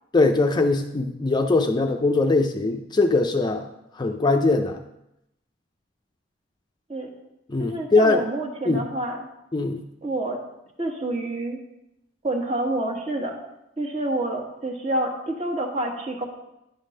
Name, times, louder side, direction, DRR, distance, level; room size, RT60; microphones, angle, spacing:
voice 1, 0.1-3.6 4.0-4.8 7.5-8.2 8.7-8.8 9.5-9.8, left 3 dB, 25° left, 5 dB, 0.4 m, -21 dB
voice 2, 7.6-9.3 10.0-10.4 10.8-11.6 12.2-13.4 13.8-16.2, right 1 dB, 35° right, 0 dB, 1.4 m, -28 dB
10.5 x 3.6 x 6.4 m, 0.87 s
head